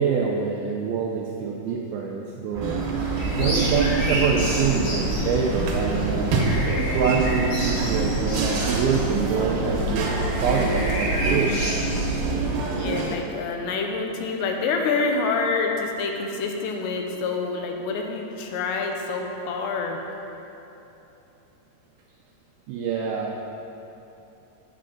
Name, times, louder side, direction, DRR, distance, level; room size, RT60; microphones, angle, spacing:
voice 1, 0.0-2.8 3.4-6.3 6.9-10.1 10.4-11.6 22.7-23.3, right 6 dB, 85° right, -1 dB, 2.1 m, -25 dB
sound 1, 2.5-10.0, right 3 dB, 30° right, 0.9 m, -34 dB
sound 2, 2.6-13.2, right 3 dB, 70° right, 2.3 m, -27 dB
sound 3, 3.2-12.5, right 1 dB, 55° left, 2.1 m, -28 dB
voice 2, 12.7-20.0, left 4 dB, 85° left, 2 dB, 3.0 m, -27 dB
10.0 x 7.6 x 3.8 m, 2.9 s
omnidirectional pair, 4.9 m